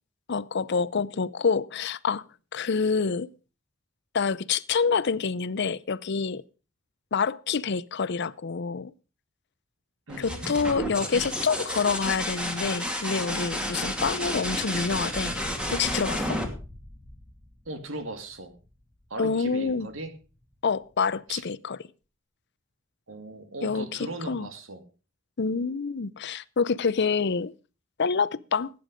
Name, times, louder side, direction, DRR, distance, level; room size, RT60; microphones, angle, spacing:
voice 1, 0.3-2.3 2.5-3.3 4.1-6.4 7.1-8.9 10.2-15.4 15.7-16.4 19.2-19.9 20.6-21.8 23.6-24.5 25.4-27.5 28.0-28.7, left 5 dB, 60° left, 0.6 m, -27 dB
sound 1, 10.1-17.7 19.5-20.0, equal, 5° right, 2.5 m, -31 dB
voice 2, 10.1-10.8 13.7-13.9 17.7-18.5 19.1-20.1 21.3-21.4 23.1-24.8, right 2 dB, 75° right, 2.3 m, -38 dB
17.0 x 9.4 x 5.1 m
head